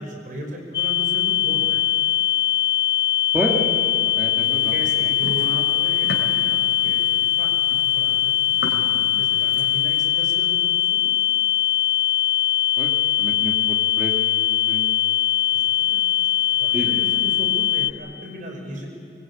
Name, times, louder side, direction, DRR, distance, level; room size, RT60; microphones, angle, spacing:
voice 1, 0.0-1.8 4.5-8.4 9.0-11.2 15.5-18.9, equal, 45° right, 2 dB, 5.4 m, -36 dB
sound 1, 0.7-17.9, left 12 dB, 25° left, 0.7 m, -21 dB
voice 2, 4.1-4.8 8.9-9.2 12.8-12.9 13.2-14.1 14.7-14.9 16.7-17.0, equal, 5° right, -2 dB, 2.2 m, -29 dB
sound 2, 4.4-10.0, left 1 dB, 75° left, 3.2 m, -37 dB
24.0 x 22.5 x 8.8 m, 2.3 s
head